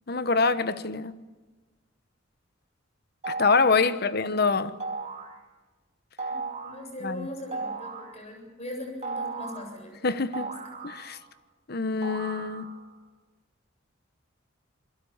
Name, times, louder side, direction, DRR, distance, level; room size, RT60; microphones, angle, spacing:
voice 1, 0.1-1.1 3.3-4.7 7.0-7.3 10.0-10.5 10.8-11.2 11.7-12.7, left 4 dB, 50° left, 1.1 m, -25 dB
sound 1, 3.2-3.8 4.8-5.3 6.2-6.8 7.5-8.1 9.0-9.7 10.3-11.3 12.0-12.8, right 4 dB, 35° right, 2.7 m, -36 dB
voice 2, 3.9-4.2 6.3-10.5, left 1 dB, 35° left, 7.7 m, -40 dB
27.5 x 22.0 x 7.3 m
head